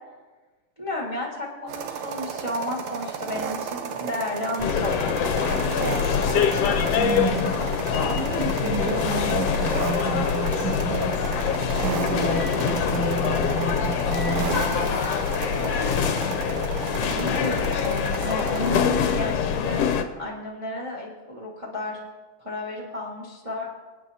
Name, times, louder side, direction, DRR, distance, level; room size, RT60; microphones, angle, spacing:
voice 1, 0.8-5.3 5.7-6.3 16.9-19.8 20.2-22.0 22.4-23.6, left 1 dB, 25° right, -2 dB, 0.6 m, -32 dB
sound 1, 1.7-18.8, right 6 dB, 70° right, 2.0 m, -33 dB
sound 2, 4.6-20.0, left 7 dB, 70° left, 1.5 m, -24 dB
voice 2, 7.0-7.5 8.1-11.1 11.8-14.5, right 3 dB, 45° right, -3 dB, 2.9 m, -30 dB
25.0 x 9.0 x 2.8 m, 1.3 s
omnidirectional pair, 3.6 m